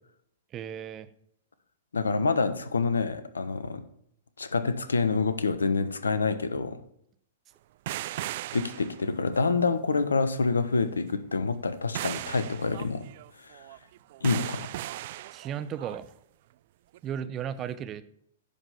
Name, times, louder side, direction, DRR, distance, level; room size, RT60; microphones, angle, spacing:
voice 1, 0.5-1.1 15.3-16.1 17.0-18.0, right 9 dB, 30° right, 13 dB, 0.8 m, -35 dB
voice 2, 1.9-3.8 4.4-6.8 8.5-13.0 13.4-13.6 14.2-14.7, left 4 dB, 80° left, 12 dB, 1.0 m, -27 dB
sound 1, 7.9-9.4 11.9-16.0 16.9-17.0, right 15 dB, 50° right, 0.3 m, -37 dB
10.5 x 5.2 x 7.1 m, 0.70 s
figure-of-eight pair, 105°, 0 cm